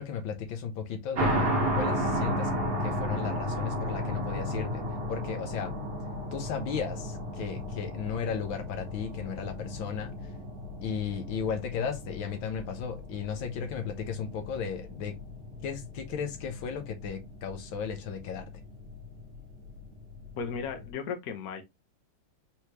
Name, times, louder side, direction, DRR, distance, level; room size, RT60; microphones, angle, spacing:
voice 1, 0.0-2.5 2.8-4.8 5.1-5.8 6.3-10.1 10.8-15.2 15.6-18.4, left 7 dB, 85° left, 1.7 m, -35 dB
sound 1, 1.1-20.9, equal, 55° right, 1.5 m, -34 dB
voice 2, 20.4-21.6, left 6 dB, 55° left, 1.3 m, -35 dB
4.5 x 3.3 x 3.0 m
omnidirectional pair, 2.1 m